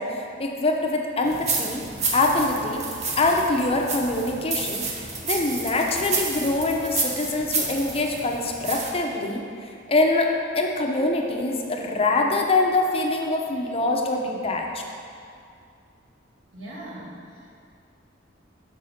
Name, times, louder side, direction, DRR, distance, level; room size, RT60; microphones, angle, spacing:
voice 1, 0.0-1.8 2.1-2.8 3.2-9.4 9.9-10.3 10.5-14.8, left 2 dB, 30° left, 1 dB, 0.6 m, -24 dB
sound 1, 1.2-8.9, right 4 dB, 40° right, 0.8 m, -30 dB
voice 2, 16.5-17.5, right 1 dB, 90° right, -5 dB, 1.7 m, -40 dB
5.7 x 4.8 x 6.3 m, 2.4 s
head